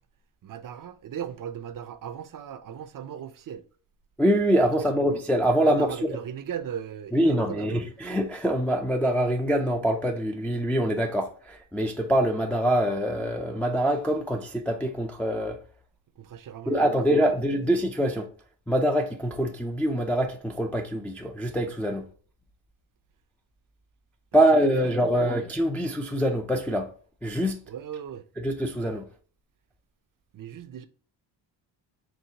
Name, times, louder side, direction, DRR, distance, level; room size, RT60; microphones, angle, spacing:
voice 1, 0.4-3.7 5.1-5.2 5.6-7.8 16.2-17.5 24.3-25.4 27.7-28.3 30.3-30.9, right 9 dB, 45° right, 0.5 m, -38 dB
voice 2, 4.2-6.2 7.1-15.6 16.7-18.3 18.7-22.1 24.3-26.9 27.2-27.6 28.4-29.0, right 1 dB, 5° left, 0.3 m, -24 dB
4.6 x 3.0 x 2.7 m
cardioid pair, 105°, 45 cm